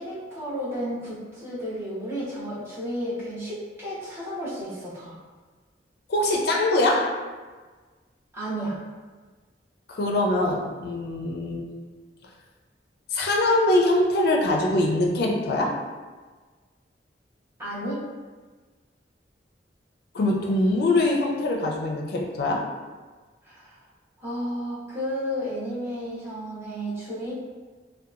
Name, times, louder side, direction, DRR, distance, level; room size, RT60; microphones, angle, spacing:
voice 1, 0.0-5.2 8.3-8.8 17.6-18.0 23.4-23.8 24.2-27.3, equal, 15° right, -10 dB, 0.9 m, -32 dB
voice 2, 6.1-7.1 9.9-11.7 13.1-15.8 20.1-22.6, left 2 dB, 60° left, 0 dB, 0.4 m, -23 dB
2.7 x 2.2 x 2.4 m, 1.4 s
head